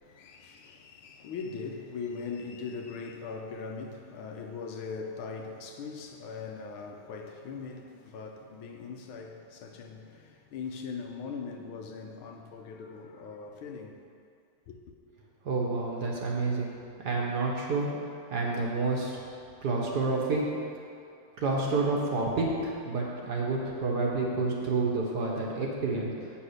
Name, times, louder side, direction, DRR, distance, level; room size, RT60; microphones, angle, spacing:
voice 1, 0.0-14.0 14.7-14.8, left 5 dB, 75° left, 1.6 m, -40 dB
voice 2, 15.4-16.7 17.0-17.9 18.3-19.2 19.6-20.4 21.4-26.1, right 3 dB, 55° right, 1.6 m, -29 dB
8.4 x 6.0 x 6.5 m
omnidirectional pair, 2.4 m